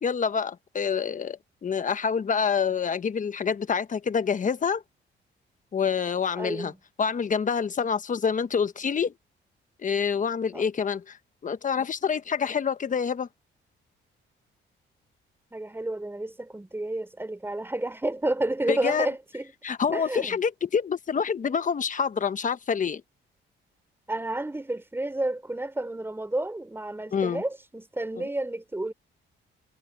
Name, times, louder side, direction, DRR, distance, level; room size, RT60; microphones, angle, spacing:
voice 1, 0.0-4.8 5.7-6.7 7.0-9.1 9.8-11.2 11.4-13.3 18.7-19.1 19.6-23.0 27.1-27.4 28.2-28.3, left 6 dB, 40° left, 1.3 m, -27 dB
voice 2, 6.3-6.8 10.5-10.7 15.5-19.5 19.9-20.4 24.1-28.9, right 2 dB, 10° right, 4.4 m, -31 dB
cardioid pair, 90°, 20 cm